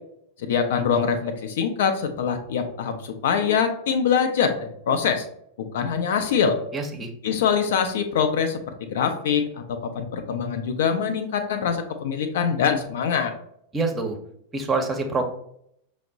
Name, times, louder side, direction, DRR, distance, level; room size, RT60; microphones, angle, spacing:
voice 1, 0.4-5.3 5.7-6.6 7.2-8.6 8.9-9.4 9.7-13.3, left 7 dB, 60° left, 6 dB, 0.5 m, -24 dB
voice 2, 6.7-7.1 13.7-14.2 14.5-15.2, right 3 dB, 15° right, 3 dB, 0.7 m, -25 dB
5.8 x 2.0 x 3.7 m, 0.72 s
figure-of-eight pair, 90°, 0 cm